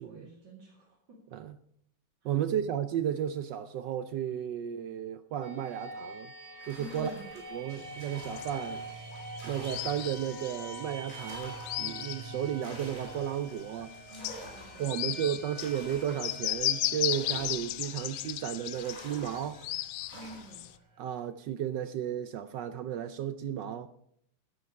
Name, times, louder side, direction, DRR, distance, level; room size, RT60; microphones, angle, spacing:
voice 1, 0.0-1.2 2.2-2.4 6.8-7.3 14.1-15.5 20.1-20.7, equal, 55° right, 2.8 m, -49 dB
voice 2, 2.2-6.3 6.6-7.1 7.5-8.8 9.4-13.9 14.8-19.6 21.0-23.9, right 10 dB, 75° right, 1.0 m, -33 dB
sound 1, 5.4-21.1, right 2 dB, 20° right, 1.6 m, -46 dB
sound 2, 6.6-10.4 10.8-18.3 18.7-20.7, equal, 20° left, 4.1 m, -50 dB
sound 3, 7.8-13.2 13.6-13.7 14.1-20.7, left 14 dB, 75° left, 1.5 m, -36 dB
13.0 x 9.6 x 4.7 m
omnidirectional pair, 2.4 m